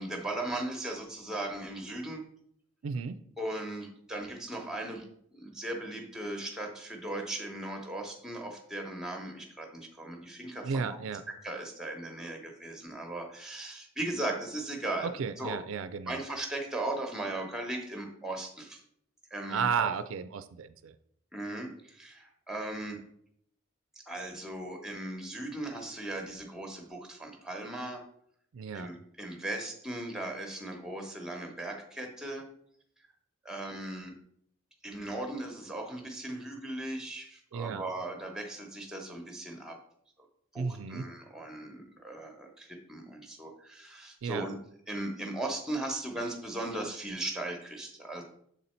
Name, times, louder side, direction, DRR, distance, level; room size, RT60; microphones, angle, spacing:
voice 1, 0.0-2.2 3.4-10.9 11.4-15.6 16.1-18.8 19.3-19.9 21.3-23.0 24.1-28.0 28.7-32.5 33.4-34.1 34.8-39.8 40.5-44.5 44.9-48.2, right 1 dB, 5° right, 3 dB, 0.9 m, -38 dB
voice 2, 2.8-3.2 10.6-11.2 15.0-16.2 19.5-20.9 28.5-28.9 37.5-37.8 40.6-41.1 44.2-44.5, right 6 dB, 80° right, 12 dB, 0.4 m, -33 dB
7.1 x 4.1 x 4.3 m, 0.68 s
head